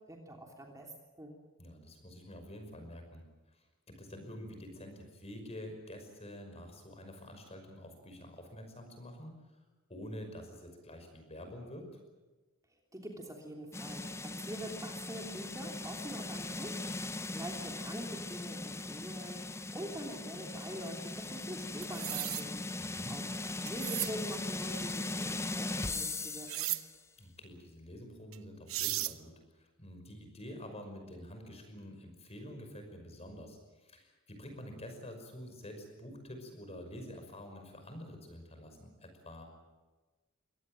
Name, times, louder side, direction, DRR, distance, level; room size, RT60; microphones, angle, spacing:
voice 1, 0.1-1.3 12.9-22.6 23.1-26.7, right 1 dB, 15° right, 1 dB, 3.2 m, -45 dB
voice 2, 1.6-3.2 3.5-9.4 9.9-11.9 22.8-23.2 27.2-39.4, left 1 dB, 30° left, 5 dB, 5.7 m, -48 dB
sound 1, 13.7-27.0, left 2 dB, 15° left, 0.7 m, -39 dB
sound 2, 21.8-22.4 23.7-24.1 26.5-26.8 28.3-28.4 28.7-29.1, right 16 dB, 80° right, 0.9 m, -35 dB
23.5 x 18.0 x 9.1 m, 1.2 s
head